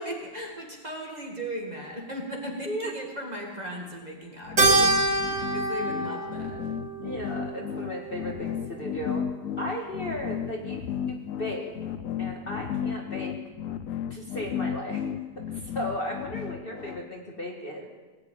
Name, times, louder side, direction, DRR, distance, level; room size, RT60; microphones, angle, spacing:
voice 1, 0.0-6.6, equal, 25° right, -1 dB, 2.2 m, -37 dB
voice 2, 2.7-3.0 7.0-9.3 9.6-10.8 11.1-11.7 12.2-13.4 14.1-15.0 15.4-17.9, equal, 30° left, -1 dB, 1.8 m, -35 dB
sound 1, 4.5-17.0, left 9 dB, 60° left, 0.9 m, -33 dB
Keyboard (musical), 4.6-9.2, right 2 dB, 75° right, 4.1 m, -27 dB
18.5 x 7.7 x 8.9 m, 1.3 s
omnidirectional pair, 1.9 m